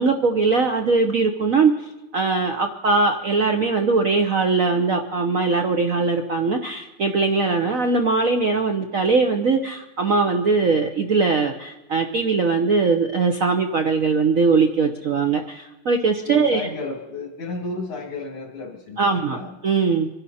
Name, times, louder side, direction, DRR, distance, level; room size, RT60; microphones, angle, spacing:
voice 1, 0.0-1.7 2.1-16.6 19.0-19.4 19.6-20.1, right 4 dB, 50° right, 4 dB, 1.1 m, -20 dB
voice 2, 16.2-19.6, left 3 dB, 80° left, -3 dB, 3.4 m, -33 dB
26.0 x 11.5 x 4.2 m, 1.0 s
omnidirectional pair, 2.3 m